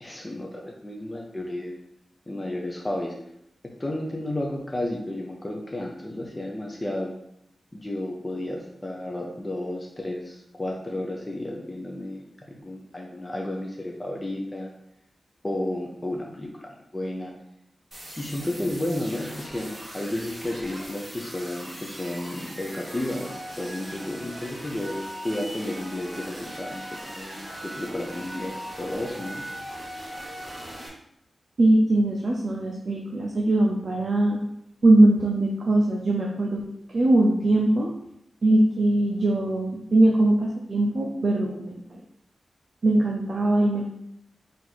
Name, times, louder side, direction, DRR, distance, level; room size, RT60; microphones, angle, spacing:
voice 1, 0.0-1.7 2.3-3.2 3.8-7.1 7.7-14.7 15.4-17.3 18.2-29.4, left 1 dB, 20° left, -1 dB, 0.5 m, -32 dB
sound 1, 17.9-30.9, equal, 15° right, 1.1 m, -39 dB
voice 2, 31.6-34.4 34.8-36.6 36.9-37.9 38.4-41.8 42.8-43.8, right 1 dB, 50° right, -1 dB, 0.5 m, -21 dB
4.4 x 2.5 x 4.1 m, 0.75 s
wide cardioid pair, 140°, 0 cm